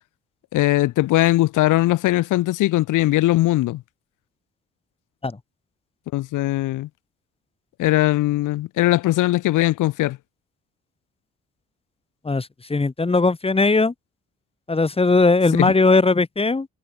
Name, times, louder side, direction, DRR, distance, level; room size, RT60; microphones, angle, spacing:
voice 1, 0.5-3.8 6.1-6.9 7.8-10.2 15.6-15.7, left 16 dB, 90° left, 1.8 m, -20 dB
voice 2, 12.2-13.9 14.7-16.7, left 3 dB, 20° left, 1.5 m, -19 dB
cardioid pair, 90°, 30 cm